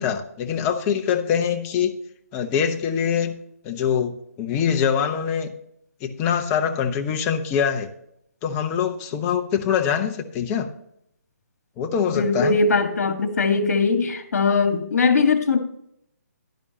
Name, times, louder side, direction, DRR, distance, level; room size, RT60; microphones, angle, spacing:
voice 1, 0.0-1.9 2.3-3.3 3.6-5.5 6.0-7.9 8.4-10.7 11.8-12.6, left 7 dB, 20° left, 5 dB, 0.9 m, -24 dB
voice 2, 12.1-15.6, left 4 dB, 70° left, 7 dB, 1.7 m, -20 dB
11.5 x 10.5 x 2.8 m, 0.74 s
hypercardioid pair, 155°, 9 cm